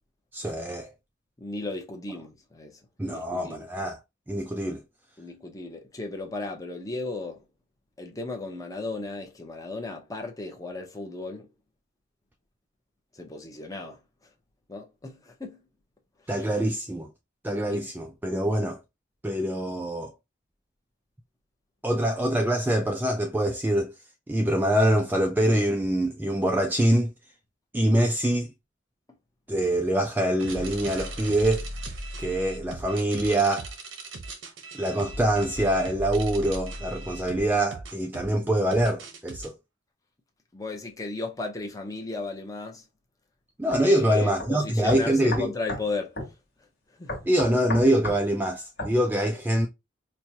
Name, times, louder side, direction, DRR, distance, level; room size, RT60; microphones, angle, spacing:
voice 1, 0.3-0.9 3.0-4.0 4.3-4.8 16.3-17.1 17.4-18.8 19.2-20.1 21.8-23.9 24.3-27.1 27.7-28.5 29.5-31.6 32.2-33.7 34.7-39.5 43.6-45.5 47.3-49.7, right 1 dB, 10° right, 0.3 m, -24 dB
voice 2, 1.4-3.7 5.2-7.4 8.0-11.5 13.1-14.0 14.7-15.6 16.3-16.5 17.7-17.8 40.5-42.8 43.8-46.3 46.9-47.3, left 3 dB, 20° left, 0.7 m, -35 dB
sound 1, 30.4-39.5, right 1 dB, 85° right, 0.9 m, -38 dB
sound 2, 43.7-43.8 44.4-44.5 44.9-45.9 46.2-46.3 47.1-48.2 48.8-49.0, left 1 dB, 55° left, 1.4 m, -33 dB
4.4 x 2.2 x 2.7 m
head